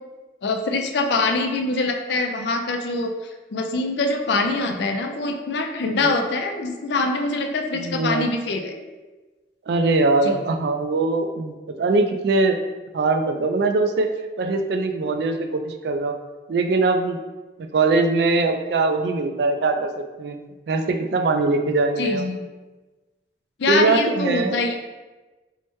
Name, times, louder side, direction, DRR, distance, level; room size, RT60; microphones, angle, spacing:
voice 1, 0.4-3.1 3.5-8.8 10.2-10.4 22.0-22.4 23.6-24.8, left 3 dB, 75° left, 4 dB, 0.4 m, -24 dB
voice 2, 7.7-8.3 9.7-12.6 12.9-14.1 14.4-16.1 16.5-17.2 17.6-20.4 20.7-22.3 23.7-24.6, right 3 dB, 65° right, 6 dB, 0.3 m, -21 dB
4.5 x 2.1 x 3.0 m, 1.2 s
head